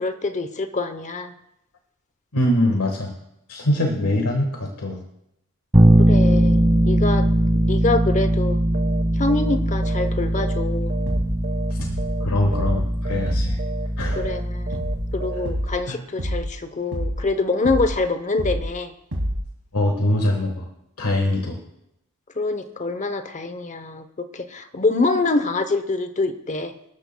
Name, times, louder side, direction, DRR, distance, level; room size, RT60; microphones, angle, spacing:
voice 1, 0.0-1.3 6.0-7.3 7.6-8.6 9.2-10.9 14.1-14.8 15.1-18.9 21.2-21.3 22.4-26.7, left 3 dB, 35° left, 10 dB, 0.8 m, -25 dB
voice 2, 2.3-3.1 3.5-5.0 11.7-11.8 12.2-13.6 14.0-14.2 15.9-16.0 19.7-20.7 21.0-21.6, left 1 dB, 80° left, 2 dB, 1.5 m, -23 dB
Bass guitar, 5.7-15.6, right 1 dB, 20° right, 1.5 m, -20 dB
sound 1, 8.7-9.0 9.3-9.6 9.8-11.2 11.4-11.7 12.0-12.3 12.5-12.8 13.0-13.3 13.6-13.9 14.1-14.4 14.7-14.9 15.2-15.5, right 4 dB, 50° right, 1.7 m, -33 dB
sound 2, 11.1-11.4 11.8-12.2 12.5-12.9 13.3-13.6 14.0-14.4 14.7-15.1 15.5-15.8 16.2-16.6 16.9-17.3 17.7-18.0 18.4-18.8 19.1-19.5, equal, 75° right, 2.6 m, -27 dB
24.5 x 12.5 x 2.2 m, 0.84 s
head